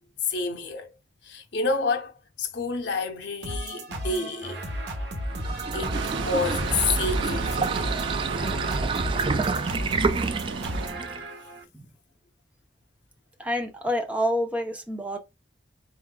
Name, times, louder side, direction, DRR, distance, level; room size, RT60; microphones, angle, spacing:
voice 1, 0.2-0.9 1.2-4.6 5.7-7.9, left 4 dB, 70° left, 0.9 m, -29 dB
sound 1, 3.4-11.6, right 1 dB, 60° right, 1.3 m, -34 dB
sound 2, 5.2-11.3, right 4 dB, 25° right, 0.3 m, -28 dB
sound 3, 5.9-10.9, right 4 dB, 85° right, 0.6 m, -34 dB
voice 2, 13.4-15.2, equal, 5° right, 0.8 m, -28 dB
4.8 x 3.6 x 2.3 m
head